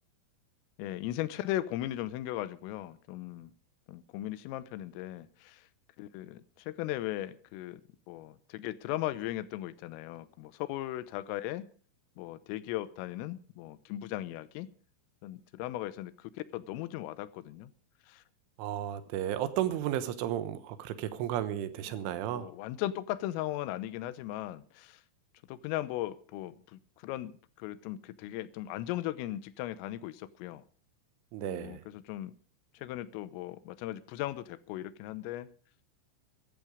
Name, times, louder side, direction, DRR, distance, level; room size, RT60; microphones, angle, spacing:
voice 1, 0.8-3.5 3.9-5.7 6.0-7.8 8.1-11.7 12.2-14.7 15.2-17.7 18.1-18.2 22.0-25.0 25.5-27.3 27.6-30.6 31.4-32.3 32.8-35.5, left 14 dB, 90° left, 15 dB, 3.5 m, -38 dB
voice 2, 18.6-22.5 31.3-31.8, right 11 dB, 75° right, 12 dB, 3.5 m, -33 dB
14.5 x 14.0 x 5.1 m, 0.43 s
omnidirectional pair, 5.8 m